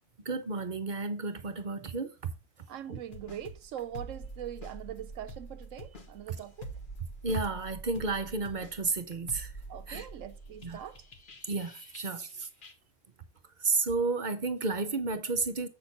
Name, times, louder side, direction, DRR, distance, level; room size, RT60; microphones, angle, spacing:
voice 1, 0.2-2.1 2.9-3.0 7.2-9.5 9.9-10.1 10.6-10.8 11.5-12.5 13.6-15.7, right 3 dB, 45° right, 0.7 m, -32 dB
voice 2, 2.7-6.7 9.7-11.1, right 10 dB, 80° right, 0.9 m, -42 dB
sound 1, 3.1-12.3 12.6-12.7, right 2 dB, 45° left, 1.2 m, -46 dB
7.6 x 6.1 x 4.0 m
omnidirectional pair, 1.3 m